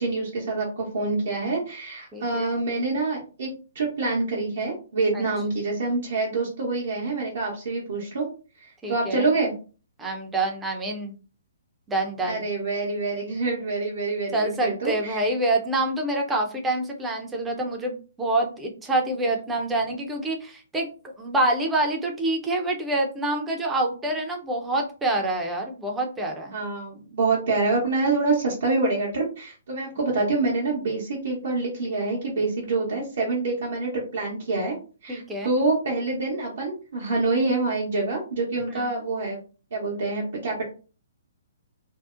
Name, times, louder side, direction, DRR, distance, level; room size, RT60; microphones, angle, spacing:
voice 1, 0.0-3.5 3.7-8.3 8.6-9.5 12.2-15.3 26.5-34.8 35.0-39.4 39.7-40.6, right 3 dB, 60° right, -4 dB, 0.8 m, -26 dB
voice 2, 2.1-2.5 5.1-5.3 8.8-9.3 10.0-11.1 11.9-12.4 14.3-26.5 35.1-35.5 38.7-38.9, right 2 dB, 10° right, 2 dB, 0.5 m, -26 dB
2.6 x 2.0 x 2.4 m, 0.36 s
figure-of-eight pair, 125°, 0 cm